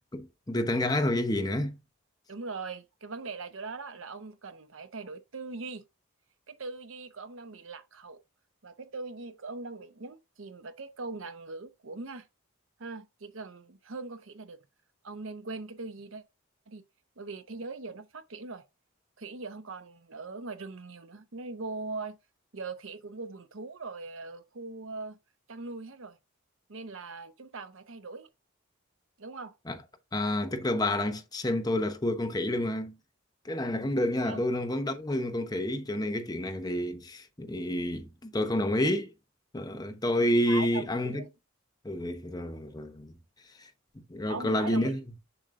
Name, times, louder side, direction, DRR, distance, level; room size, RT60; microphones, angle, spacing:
voice 1, 0.1-1.7 29.7-29.8 30.1-32.9 33.4-39.1 39.5-41.2 41.8-43.1 43.6-43.7 44.1-45.0, left 1 dB, 20° left, 0.7 m, -29 dB
voice 2, 2.3-5.8 6.5-8.2 8.6-12.3 12.8-14.6 15.0-16.2 16.7-16.8 17.2-18.6 19.2-22.2 22.5-25.2 25.5-26.2 26.7-28.3 29.2-29.5 34.2-34.4 40.5-41.3 44.3-45.0, right 3 dB, 70° right, 0.8 m, -41 dB
7.0 x 6.4 x 2.5 m
head